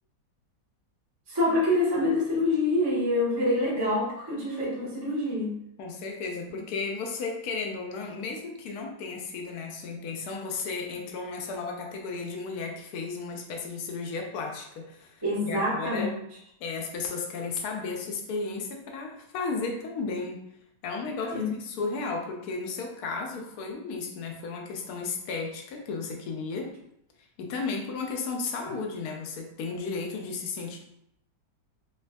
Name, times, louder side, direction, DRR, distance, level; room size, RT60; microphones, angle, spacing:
voice 1, 1.3-5.5 15.2-16.1 21.3-21.5, left 1 dB, 20° right, -8 dB, 0.7 m, -26 dB
voice 2, 5.8-16.1 16.6-20.4 20.8-26.7 27.4-30.8, left 4 dB, 70° left, 1 dB, 1.1 m, -34 dB
3.3 x 3.0 x 2.3 m, 0.78 s
omnidirectional pair, 1.9 m